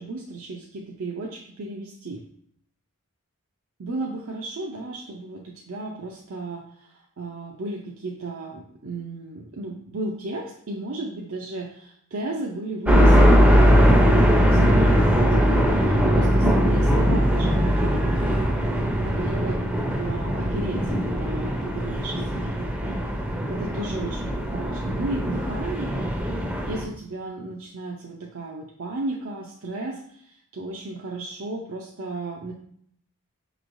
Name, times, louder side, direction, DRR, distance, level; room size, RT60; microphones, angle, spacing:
voice 1, 0.0-2.2 3.8-18.3 19.0-23.0 23.5-26.0 26.6-32.5, right 2 dB, 65° right, -1 dB, 0.5 m, -34 dB
sound 1, 12.9-26.8, equal, 5° right, 0.5 m, -20 dB
6.2 x 3.1 x 2.6 m, 0.67 s
head